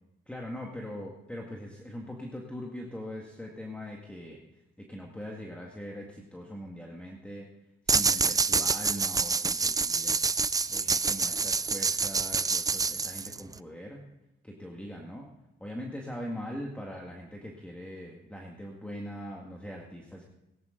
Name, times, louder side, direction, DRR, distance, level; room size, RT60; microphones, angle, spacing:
voice 1, 0.3-7.5 7.9-10.2 10.7-14.1 14.4-15.3 15.6-20.2, equal, 5° left, -1 dB, 1.9 m, -41 dB
sound 1, 7.9-13.6, right 4 dB, 20° right, 0.4 m, -27 dB
18.5 x 11.0 x 3.9 m, 0.92 s
cardioid pair, 90°, 20 cm